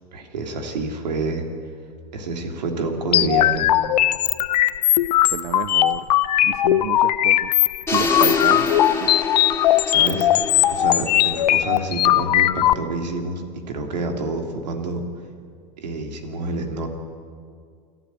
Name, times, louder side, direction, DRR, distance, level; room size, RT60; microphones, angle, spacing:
voice 1, 0.1-1.5 2.1-3.7 9.9-10.3 10.7-15.0 15.8-16.9, right 3 dB, 85° right, 3.1 m, -28 dB
sound 1, 3.1-12.7, left 13 dB, 75° left, 0.8 m, -19 dB
voice 2, 5.2-6.1 6.4-7.5 7.9-8.7 9.0-9.3, right 16 dB, 70° right, 0.5 m, -31 dB
sound 2, 7.9-11.9, left 4 dB, 10° left, 3.2 m, -26 dB
29.0 x 11.5 x 9.3 m
hypercardioid pair, 90°, 21 cm